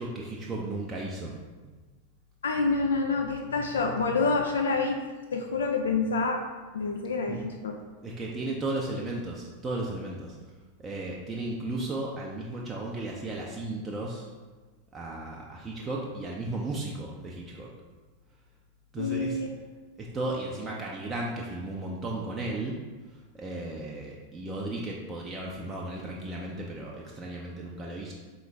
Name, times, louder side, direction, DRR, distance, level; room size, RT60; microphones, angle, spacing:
voice 1, 0.0-1.3 7.3-7.5 8.0-10.4 10.8-14.3 14.9-17.7 18.9-19.4 20.0-22.8 23.1-28.1, right 2 dB, 20° right, -3 dB, 0.5 m, -35 dB
voice 2, 2.4-5.0 5.3-6.4 6.7-7.7 19.0-19.5, left 4 dB, 65° left, 2 dB, 0.3 m, -27 dB
3.9 x 3.1 x 3.4 m, 1.3 s
figure-of-eight pair, 90°, 0 cm